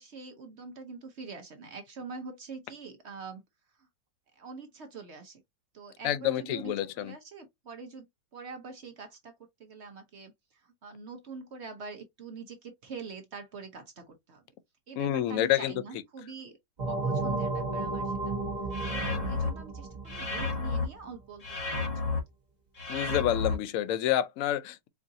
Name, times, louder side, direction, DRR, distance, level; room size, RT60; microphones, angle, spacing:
voice 1, 0.0-3.4 3.8-3.9 4.4-5.4 5.7-8.1 8.3-14.4 14.9-16.6 16.8-18.4 18.9-21.9, right 4 dB, 55° right, 0.7 m, -45 dB
voice 2, 6.0-7.1 15.0-15.7 22.9-24.9, left 12 dB, 70° left, 0.8 m, -28 dB
sound 1, 16.8-21.2, right 3 dB, 30° right, 1.1 m, -33 dB
sound 2, 18.7-19.5 20.1-20.9 21.4-22.2 22.8-23.5, left 3 dB, 25° left, 1.0 m, -31 dB
4.7 x 2.5 x 2.6 m
omnidirectional pair, 1.9 m